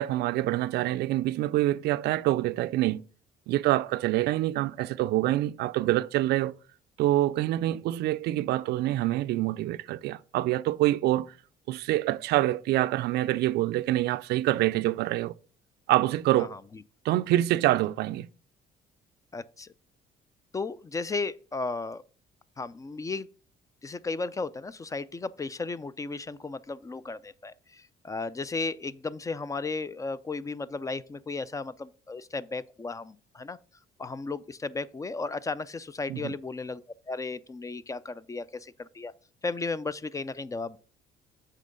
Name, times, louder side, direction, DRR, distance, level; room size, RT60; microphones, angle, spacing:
voice 1, 0.0-3.1 3.5-6.5 7.0-11.3 11.7-15.4 15.9-16.5 17.0-18.3 36.1-36.3, right 15 dB, 75° right, 0.4 m, -26 dB
voice 2, 19.3-19.7 20.5-22.0 22.6-23.3 23.8-33.6 34.0-39.1 39.4-40.8, left 3 dB, 20° left, 0.4 m, -35 dB
7.5 x 3.8 x 6.5 m
cardioid pair, 110°, 17 cm